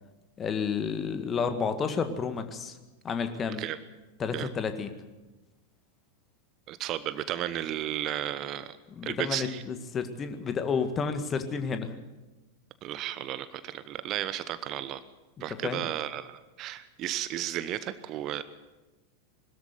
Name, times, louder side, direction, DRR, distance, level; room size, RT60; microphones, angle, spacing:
voice 1, 0.4-2.8 3.0-3.6 4.2-4.9 8.9-11.9 15.6-15.8, left 5 dB, 25° left, 9 dB, 1.8 m, -31 dB
voice 2, 6.7-8.8 9.0-9.6 12.8-15.0 15.4-18.4, right 12 dB, 35° right, 15 dB, 0.8 m, -34 dB
21.0 x 13.5 x 9.5 m, 1.1 s
figure-of-eight pair, 90°, 0 cm